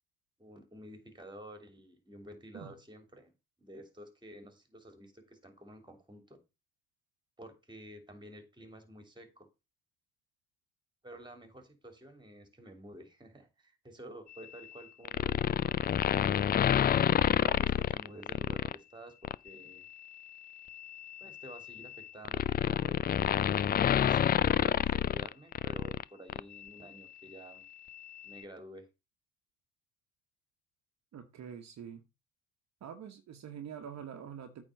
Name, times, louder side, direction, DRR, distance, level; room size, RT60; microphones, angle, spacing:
voice 1, 0.4-3.3 3.6-6.4 7.4-9.5 11.0-15.7 17.2-19.9 21.2-23.6 24.0-27.6 28.2-28.9, equal, 10° right, 2.9 m, -51 dB
sound 1, 15.1-18.8 19.2-19.5 20.7-26.0 26.3-26.4, left 10 dB, 25° left, 0.4 m, -28 dB
voice 2, 31.1-32.0 32.8-34.6, right 8 dB, 45° right, 1.3 m, -45 dB
8.7 x 4.1 x 6.4 m
supercardioid pair, 80°, 37 cm